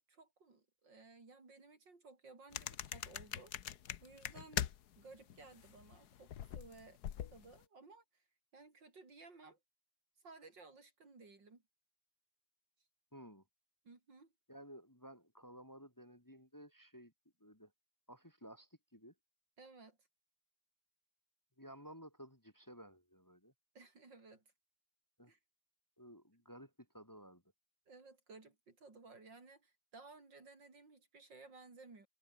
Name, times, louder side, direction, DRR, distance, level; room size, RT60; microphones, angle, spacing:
voice 1, 0.1-3.5 4.0-4.7 5.0-8.2 8.5-9.6 10.2-11.6 13.8-14.3 19.6-20.0 23.7-24.4 25.2-25.4 27.9-32.1, right 3 dB, 75° right, 4.9 m, -58 dB
sound 1, 2.5-5.0 5.3-7.6, left 10 dB, 65° left, 1.5 m, -42 dB
voice 2, 13.1-13.4 14.5-17.1 17.4-17.7 18.1-19.1 21.6-23.5 25.2-25.3 26.0-27.4, equal, 10° left, 2.4 m, -55 dB
omnidirectional pair, 2.0 m